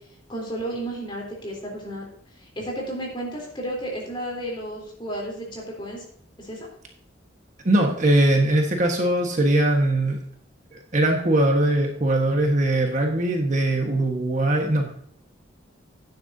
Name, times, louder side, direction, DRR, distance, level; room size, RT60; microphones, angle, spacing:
voice 1, 0.3-2.1 2.4-6.0 6.4-6.7, right 1 dB, 25° left, -2 dB, 3.5 m, -32 dB
voice 2, 7.6-10.2 10.7-15.0, right 1 dB, 40° right, 2 dB, 1.4 m, -21 dB
11.5 x 9.5 x 2.7 m, 0.66 s
head